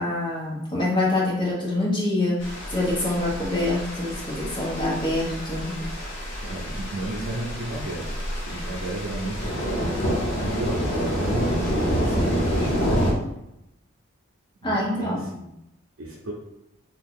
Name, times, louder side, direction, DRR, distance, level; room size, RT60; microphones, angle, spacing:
voice 1, 0.0-2.4 2.7-5.8 14.6-15.3, left 2 dB, 25° left, -6 dB, 0.9 m, -25 dB
sound 1, 2.4-13.1, equal, 60° left, 0.9 m, -27 dB
voice 2, 6.4-8.1 8.5-9.6 10.4-13.0 14.6-15.5 16.0-16.3, right 1 dB, 75° right, -4 dB, 0.5 m, -33 dB
2.7 x 2.3 x 3.6 m, 0.86 s
head